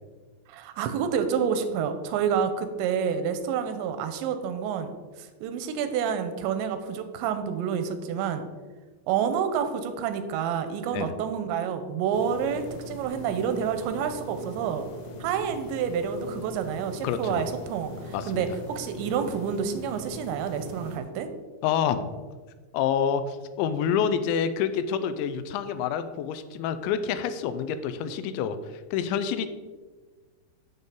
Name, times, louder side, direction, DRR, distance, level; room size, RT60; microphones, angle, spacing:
voice 1, 0.5-4.9 5.2-8.4 9.1-14.9 15.2-21.3, right 7 dB, 90° right, 8 dB, 2.9 m, -28 dB
sound 1, 12.1-21.0, left 1 dB, 70° left, 2.3 m, -41 dB
voice 2, 17.0-17.4 18.1-18.4 21.6-22.1 22.7-29.5, left 7 dB, 90° left, 11 dB, 2.9 m, -27 dB
8.2 x 7.8 x 3.7 m, 1.4 s
omnidirectional pair, 5.2 m